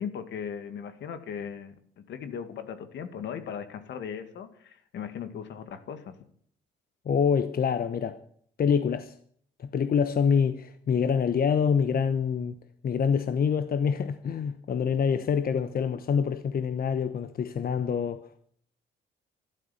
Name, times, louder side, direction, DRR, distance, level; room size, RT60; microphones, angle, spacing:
voice 1, 0.0-6.1, left 7 dB, 75° left, 2.1 m, -38 dB
voice 2, 7.0-8.2 8.6-9.1 9.6-12.6 12.8-18.4, left 6 dB, 50° left, 1.1 m, -26 dB
12.5 x 12.0 x 8.5 m
cardioid pair, 80°, 19 cm